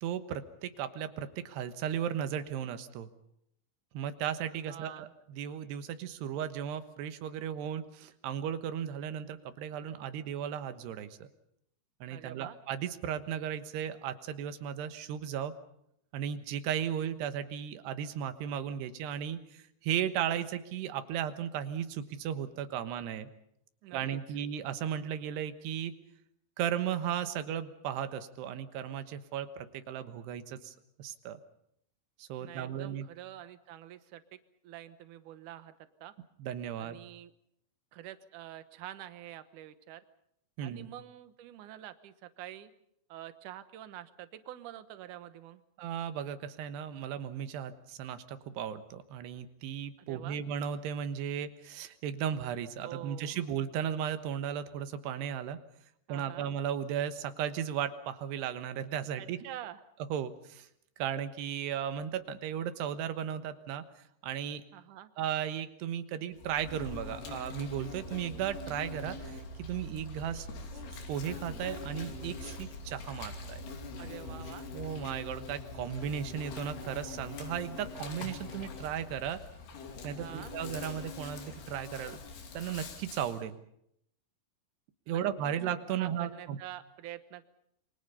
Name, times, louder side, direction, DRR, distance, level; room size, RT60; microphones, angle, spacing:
voice 1, 0.0-3.1 3.9-11.3 12.0-15.5 16.1-23.3 23.9-25.9 26.6-31.4 32.2-33.1 36.4-37.0 40.6-40.9 45.8-55.6 56.1-59.4 60.1-60.7 61.0-63.8 64.2-64.6 65.2-70.5 71.1-73.6 74.7-79.4 80.0-82.2 82.5-83.6 85.1-86.6, right 9 dB, 85° right, 10 dB, 3.4 m, -35 dB
voice 2, 4.7-5.1 12.1-12.6 23.8-24.4 32.4-34.4 34.6-35.7 36.0-36.1 36.8-37.3 37.9-40.0 40.6-42.7 43.1-45.6 50.0-50.4 52.8-53.5 56.1-56.5 59.2-59.8 64.7-65.1 74.0-74.7 80.0-80.5 85.1-85.5 85.9-87.4, right 12 dB, 65° right, 11 dB, 2.2 m, -47 dB
Insect, 66.4-83.4, left 3 dB, 80° left, 4.8 m, -43 dB
27.5 x 24.0 x 5.5 m, 0.74 s
omnidirectional pair, 4.7 m